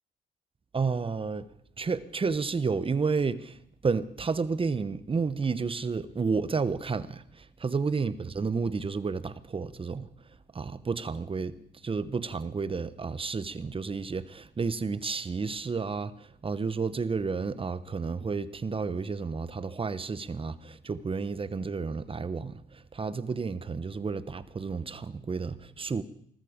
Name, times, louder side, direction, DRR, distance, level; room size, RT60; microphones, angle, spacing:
voice 1, 0.7-1.5 1.8-3.6 3.8-10.1 10.5-11.6 11.8-26.0, right 4 dB, 25° right, 1.0 m, -31 dB
20.0 x 14.0 x 5.1 m
cardioid pair, 90°, 20 cm